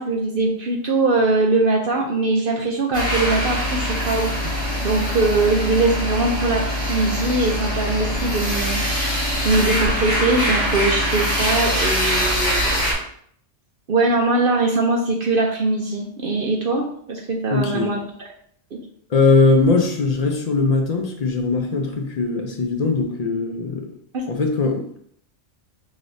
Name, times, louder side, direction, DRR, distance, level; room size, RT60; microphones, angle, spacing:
voice 1, 0.0-12.8 13.9-18.0 24.1-24.2, right 2 dB, 55° right, 0 dB, 0.7 m, -22 dB
sound 1, 2.9-12.9, equal, 5° left, 1.6 m, -23 dB
voice 2, 17.5-17.9 19.1-23.9 24.3-25.0, left 3 dB, 50° left, 2 dB, 0.5 m, -20 dB
4.9 x 3.3 x 2.6 m, 0.63 s
omnidirectional pair, 1.3 m